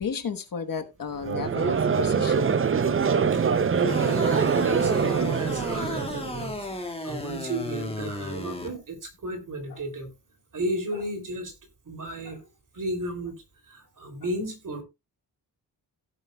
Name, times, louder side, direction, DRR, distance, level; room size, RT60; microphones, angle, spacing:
voice 1, 0.0-2.6 8.4-8.6 9.7-9.8 12.2-12.3, left 6 dB, 55° left, 1.2 m, -34 dB
Conversation / Crowd, 1.2-6.5, right 6 dB, 30° right, 0.5 m, -24 dB
voice 2, 3.3-10.1 10.5-11.5 11.8-12.4 12.7-13.3 13.6-14.8, right 1 dB, 50° right, 3.0 m, -34 dB
sound 1, 3.9-8.7, left 1 dB, 15° left, 1.9 m, -34 dB
16.5 x 8.0 x 2.2 m
wide cardioid pair, 180°, 41 cm